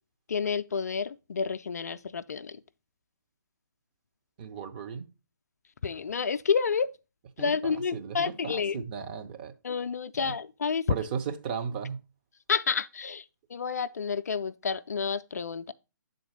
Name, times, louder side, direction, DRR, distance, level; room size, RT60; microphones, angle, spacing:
voice 1, 0.3-2.6 5.8-6.9 7.4-8.8 9.6-10.9 12.5-13.2 13.5-15.7, left 5 dB, 50° left, 0.3 m, -30 dB
voice 2, 4.4-5.1 7.4-9.5 10.1-10.3 10.9-12.0, right 6 dB, 25° right, 0.7 m, -36 dB
7.5 x 4.0 x 4.9 m
figure-of-eight pair, 135°, 11 cm